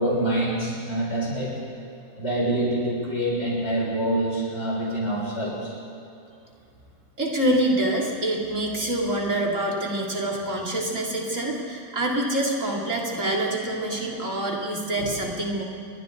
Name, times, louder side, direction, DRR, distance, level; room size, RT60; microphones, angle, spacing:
voice 1, 0.0-1.6 2.2-5.7, right 1 dB, 55° left, -5 dB, 6.6 m, -26 dB
voice 2, 7.2-15.6, right 1 dB, 65° right, -2 dB, 3.6 m, -26 dB
29.5 x 22.5 x 4.0 m, 2.7 s
omnidirectional pair, 1.4 m